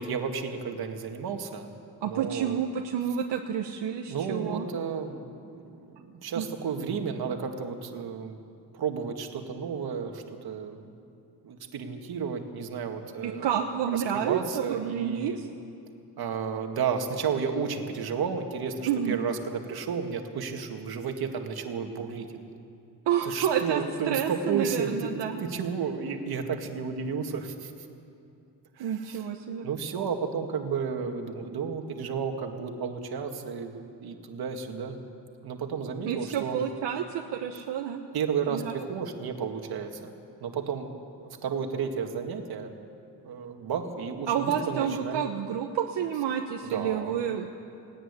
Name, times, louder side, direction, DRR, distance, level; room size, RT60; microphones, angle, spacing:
voice 1, 0.0-2.6 4.1-5.6 6.0-8.4 8.7-10.9 11.4-13.6 13.9-15.4 16.2-22.3 23.2-27.7 28.7-29.2 29.6-35.0 35.4-36.6 38.1-40.1 40.4-40.9 41.2-42.7 43.2-45.2 46.7-47.2, right 6 dB, 60° right, 5 dB, 2.0 m, -32 dB
voice 2, 2.0-4.7 6.4-6.5 13.2-15.4 18.9-19.2 23.1-25.4 28.8-29.7 36.0-38.0 38.5-38.9 44.3-47.5, right 8 dB, 80° right, 3 dB, 1.2 m, -29 dB
18.5 x 17.5 x 9.8 m, 2.6 s
wide cardioid pair, 180°, 41 cm